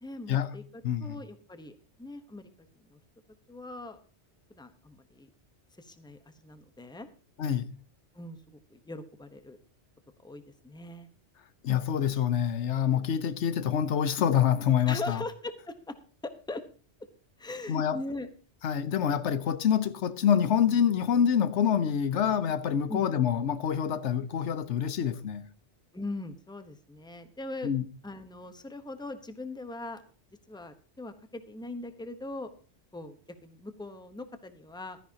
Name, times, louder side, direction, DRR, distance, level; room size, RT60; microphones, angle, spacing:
voice 1, 0.0-2.5 2.8-3.0 3.5-4.0 4.5-5.3 5.8-7.1 8.1-9.6 10.2-11.1 14.9-15.9 16.2-16.6 17.4-18.3 22.9-23.1 25.9-27.7 28.0-30.0 30.5-32.5 32.9-33.2 33.4-35.0, left 2 dB, 5° left, 0.9 m, -40 dB
voice 2, 0.8-1.2 7.4-7.7 11.6-15.2 17.7-18.0 18.6-25.5 27.6-27.8, left 8 dB, 90° left, 1.1 m, -26 dB
15.5 x 12.5 x 2.8 m
omnidirectional pair, 1.2 m